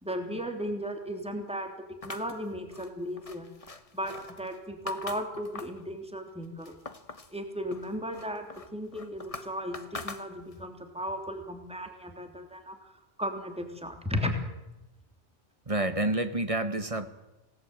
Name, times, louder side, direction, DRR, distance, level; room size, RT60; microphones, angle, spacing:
voice 1, 0.0-1.7 2.0-3.5 3.9-6.7 7.3-12.9 13.2-14.3, equal, 5° right, 5 dB, 3.1 m, -35 dB
sound 1, 2.0-5.9 6.3-7.4 7.7-10.7, left 3 dB, 30° left, 1.3 m, -44 dB
voice 2, 15.7-17.1, right 2 dB, 30° right, 10 dB, 1.6 m, -28 dB
26.5 x 18.5 x 9.1 m, 0.99 s
omnidirectional pair, 1.2 m